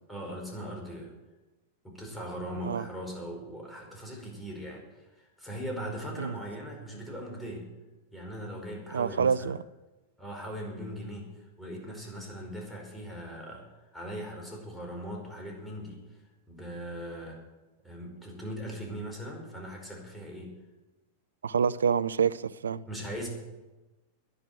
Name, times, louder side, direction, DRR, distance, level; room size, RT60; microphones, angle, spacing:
voice 1, 0.1-1.1 1.8-7.7 8.1-9.5 10.2-17.4 17.8-20.5 22.9-23.3, equal, 5° left, 4.9 m, -40 dB
voice 2, 8.9-9.6 21.4-22.8, right 6 dB, 70° right, 0.4 m, -27 dB
11.0 x 10.5 x 8.9 m
figure-of-eight pair, 90°, 0 cm